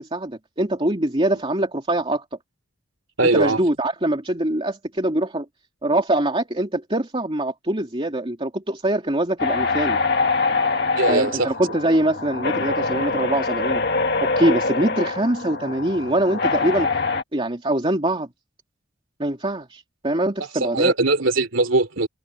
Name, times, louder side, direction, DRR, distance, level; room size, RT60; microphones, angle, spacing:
voice 1, 0.0-2.2 3.3-5.4 5.8-10.0 11.1-13.8 14.2-16.9 17.3-18.3 19.2-20.9, right 1 dB, 25° right, 2.8 m, -23 dB
voice 2, 3.2-3.6 10.9-11.5 20.6-22.1, right 2 dB, 65° right, 3.5 m, -20 dB
sound 1, 9.4-17.2, left 4 dB, 55° left, 1.9 m, -24 dB
head